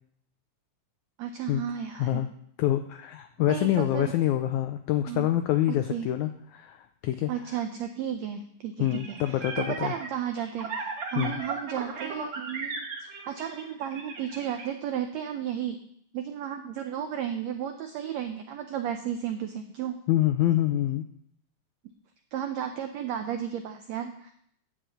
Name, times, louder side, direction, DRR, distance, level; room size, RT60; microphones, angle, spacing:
voice 1, 1.2-2.2 3.4-4.1 5.1-5.3 5.7-6.1 7.3-15.8 16.1-20.0 22.3-24.3, right 9 dB, 90° right, 6 dB, 1.5 m, -34 dB
voice 2, 2.6-7.3 8.8-9.9 11.2-11.4 20.1-21.0, left 13 dB, 80° left, 8 dB, 1.7 m, -26 dB
sound 1, 8.9-14.6, right 4 dB, 55° right, 2.5 m, -36 dB
12.0 x 4.9 x 7.9 m, 0.68 s
omnidirectional pair, 3.9 m